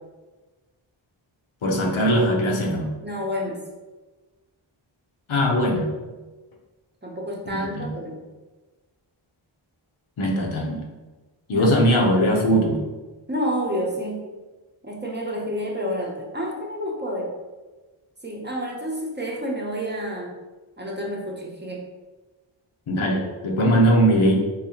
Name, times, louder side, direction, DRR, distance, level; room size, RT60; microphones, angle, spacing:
voice 1, 1.6-2.9 5.3-5.9 7.5-7.9 10.2-10.8 11.5-12.8 22.9-24.4, equal, 85° left, -1 dB, 0.8 m, -20 dB
voice 2, 3.0-3.6 7.0-8.2 11.5-11.7 13.3-14.2 14.8-17.4 18.2-20.4 20.8-21.8, equal, 20° right, -2 dB, 0.7 m, -29 dB
3.9 x 2.7 x 2.8 m, 1.2 s
wide cardioid pair, 70°, 48 cm